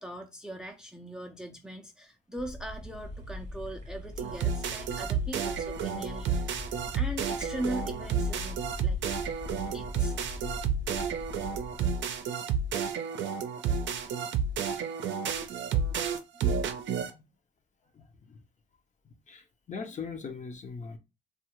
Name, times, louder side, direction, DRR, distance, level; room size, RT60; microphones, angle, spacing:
voice 1, 0.0-9.0 9.7-10.1, right 1 dB, 5° right, 0.5 m, -40 dB
sound 1, 2.4-11.9, left 2 dB, 65° left, 0.9 m, -42 dB
sound 2, 2.5-2.6 2.8-10.6, left 9 dB, 35° right, 0.8 m, -54 dB
sound 3, 4.2-17.1, right 6 dB, 70° right, 0.5 m, -31 dB
voice 2, 16.7-17.2 17.9-18.4 19.3-21.0, left 5 dB, 40° left, 0.6 m, -41 dB
2.6 x 2.4 x 3.0 m
cardioid pair, 90°, 20 cm